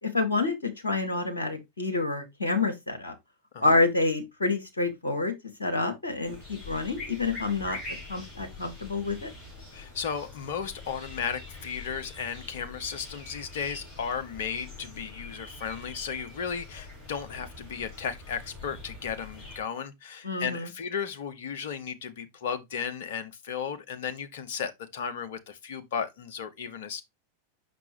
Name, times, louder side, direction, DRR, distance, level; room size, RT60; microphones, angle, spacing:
voice 1, 0.0-3.1 3.6-5.3 5.6-7.8 8.1-9.3 20.2-20.7, left 3 dB, 75° left, 1.3 m, -28 dB
sound 1, 6.2-19.6, left 2 dB, 20° left, 4.5 m, -44 dB
voice 2, 9.7-27.0, left 7 dB, 55° left, 1.0 m, -35 dB
5.9 x 5.8 x 2.7 m
figure-of-eight pair, 90°, 0 cm